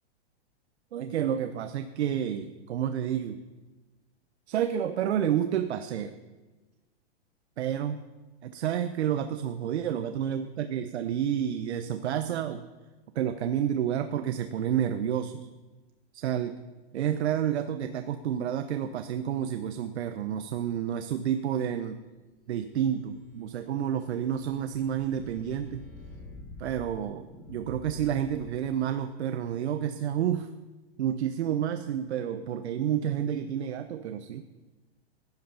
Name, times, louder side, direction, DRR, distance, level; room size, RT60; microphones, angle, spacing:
voice 1, 0.9-3.4 4.5-6.2 7.6-8.0 8.4-12.7 13.1-15.5 16.1-16.6 16.9-22.0 22.5-25.9 26.6-30.5 31.0-34.4, right 9 dB, 85° right, 9 dB, 0.9 m, -30 dB
sound 1, 22.6-28.9, left 2 dB, 25° left, 4.0 m, -48 dB
16.0 x 10.5 x 5.6 m, 1.2 s
supercardioid pair, 165°, 32 cm